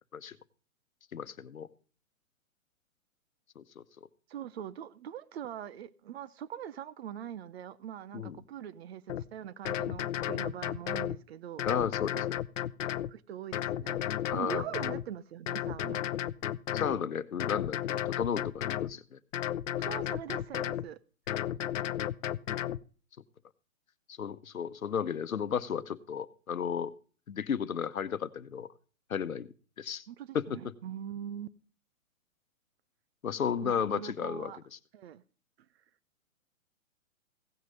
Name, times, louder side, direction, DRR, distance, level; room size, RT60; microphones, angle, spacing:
voice 1, 1.1-1.7 3.6-3.8 8.1-8.4 11.6-12.2 14.3-14.6 16.7-19.2 21.3-21.6 24.2-26.9 27.3-28.7 29.1-29.5 29.8-30.0 30.3-30.6 33.2-34.5, left 7 dB, 80° left, 1.0 m, -33 dB
voice 2, 4.3-11.8 12.1-12.2 13.1-14.0 14.3-16.0 19.8-21.0 30.1-31.5 33.6-34.6 34.9-35.2, right 10 dB, 50° right, 0.7 m, -42 dB
sound 1, 9.1-9.2 9.7-11.2 11.6-13.1 13.5-15.1 15.5-17.0 17.4-18.9 19.3-20.9 21.3-22.8, left 11 dB, 65° left, 0.6 m, -33 dB
16.0 x 6.4 x 5.3 m
hypercardioid pair, 130°, 41 cm